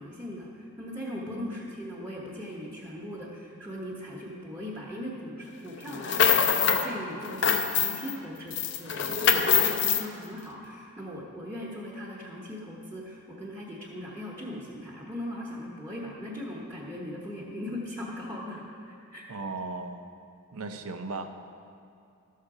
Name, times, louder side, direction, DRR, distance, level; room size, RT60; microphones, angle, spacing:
voice 1, 0.0-6.3 6.6-19.3, left 1 dB, 10° right, -6 dB, 1.1 m, -39 dB
voice 2, 1.3-1.6 19.3-20.1 20.5-21.4, right 3 dB, 80° right, 7 dB, 0.7 m, -37 dB
sound 1, 5.9-6.9 7.2-8.1 8.5-10.0, left 7 dB, 50° left, 0.5 m, -24 dB
13.0 x 6.6 x 4.9 m, 2.6 s
head